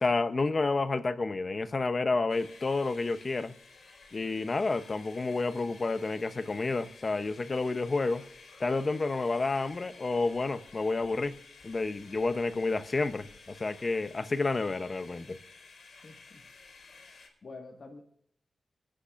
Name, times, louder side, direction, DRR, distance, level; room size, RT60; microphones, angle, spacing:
voice 1, 0.0-3.5 4.1-8.2 8.6-11.3 11.6-15.4, left 3 dB, 35° left, 0.7 m, -30 dB
sound 1, 2.3-17.3, left 4 dB, 75° left, 4.5 m, -53 dB
voice 2, 16.0-16.4 17.4-18.0, left 3 dB, 55° left, 1.8 m, -47 dB
30.0 x 10.0 x 2.5 m
wide cardioid pair, 145°, 0 cm